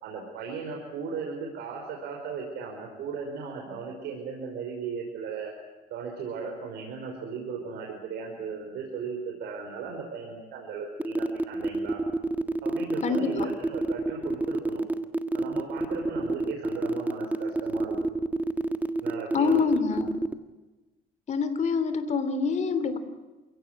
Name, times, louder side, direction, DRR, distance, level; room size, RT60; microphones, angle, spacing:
voice 1, 0.0-5.5 5.9-12.0 12.6-14.8 15.3-18.0 19.0-19.6, right 5 dB, 80° right, 0 dB, 5.2 m, -36 dB
sound 1, 11.0-20.3, right 2 dB, 10° right, 1.6 m, -28 dB
voice 2, 13.0-13.4 19.3-20.1 21.3-23.0, left 5 dB, 45° left, 11 dB, 3.3 m, -26 dB
28.0 x 17.0 x 9.1 m, 1.2 s
cardioid pair, 110°, 17 cm